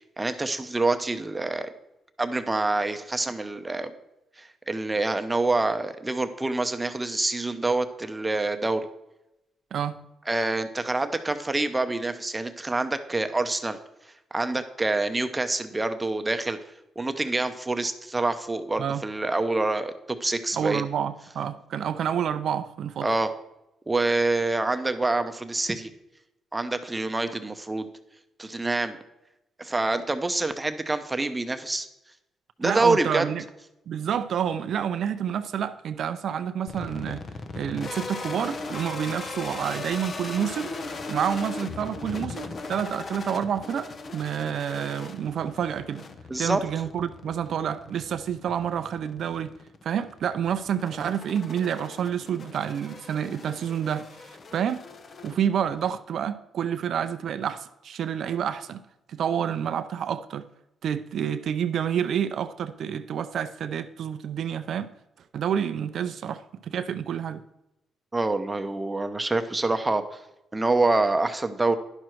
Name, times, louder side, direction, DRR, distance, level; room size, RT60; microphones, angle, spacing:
voice 1, 0.2-1.7 2.2-3.9 4.4-8.9 10.3-13.8 14.3-16.6 17.0-20.8 23.0-23.3 23.9-25.9 26.5-27.9 28.4-29.0 29.6-31.9 32.6-33.2 46.3-46.6 68.1-70.2 70.5-71.7, right 2 dB, 15° right, 8 dB, 0.7 m, -26 dB
voice 2, 9.7-10.0 18.8-19.0 20.5-23.1 32.6-33.4 33.9-37.2 37.6-40.7 41.1-46.0 46.4-49.5 49.8-54.1 54.5-54.8 55.2-58.8 59.1-60.4 60.8-64.9 65.3-67.4, right 8 dB, 65° right, 11 dB, 0.5 m, -28 dB
sound 1, 36.7-55.9, left 3 dB, 45° left, 0.8 m, -39 dB
10.5 x 6.3 x 4.5 m, 0.89 s
cardioid pair, 90°, 0 cm